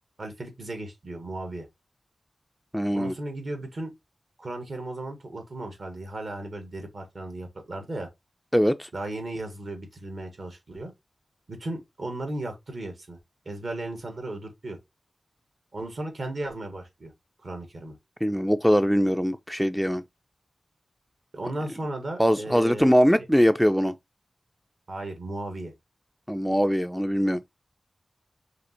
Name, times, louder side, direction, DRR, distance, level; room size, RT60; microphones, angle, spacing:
voice 1, 0.2-1.7 2.9-3.9 4.4-8.1 8.9-10.9 11.5-13.2 13.4-14.8 15.7-17.1 17.4-18.0 21.3-22.9 24.9-25.7, right 2 dB, 60° right, 1.8 m, -35 dB
voice 2, 2.7-3.1 8.5-8.9 18.2-20.0 22.2-23.9 26.3-27.4, equal, ahead, 0.3 m, -22 dB
5.0 x 3.2 x 3.0 m
wide cardioid pair, 90°, 0 cm